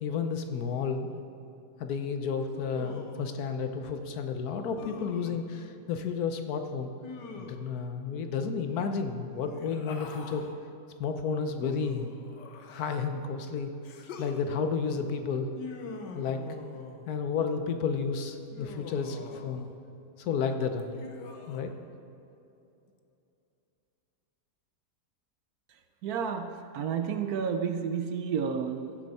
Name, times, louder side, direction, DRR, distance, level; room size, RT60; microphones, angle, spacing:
voice 1, 0.0-1.2 1.8-6.9 7.4-10.5 11.0-12.2 12.7-13.7 14.2-15.5 16.1-16.4 17.1-19.7 20.2-21.1 21.5-21.7, left 5 dB, 65° left, 7 dB, 1.2 m, -32 dB
Human voice, 2.5-3.4 4.8-5.5 7.0-7.8 9.4-10.5 11.6-13.1 13.8-14.4 15.5-17.1 18.5-19.7 20.7-21.6, left 4 dB, 85° left, 1.5 m, -44 dB
voice 2, 26.0-29.0, right 7 dB, 70° right, 7 dB, 1.0 m, -31 dB
15.0 x 7.8 x 4.2 m, 2.8 s
omnidirectional pair, 1.8 m